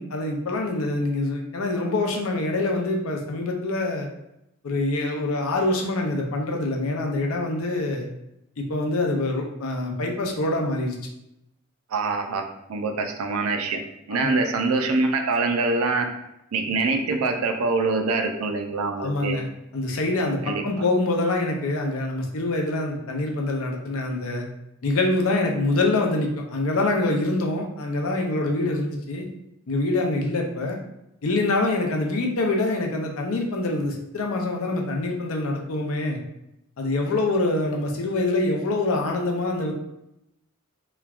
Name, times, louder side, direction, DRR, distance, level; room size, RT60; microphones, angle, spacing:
voice 1, 0.0-4.1 4.6-8.1 8.6-11.0 14.1-14.4 19.0-19.5 19.7-24.4 24.8-29.3 29.7-30.8 31.2-36.2 36.8-39.7, left 2 dB, 80° left, 1 dB, 0.5 m, -25 dB
voice 2, 11.9-13.8 14.1-16.1 16.5-19.4 20.4-20.6, right 3 dB, 90° right, 6 dB, 0.4 m, -24 dB
3.0 x 2.3 x 2.4 m, 0.84 s
head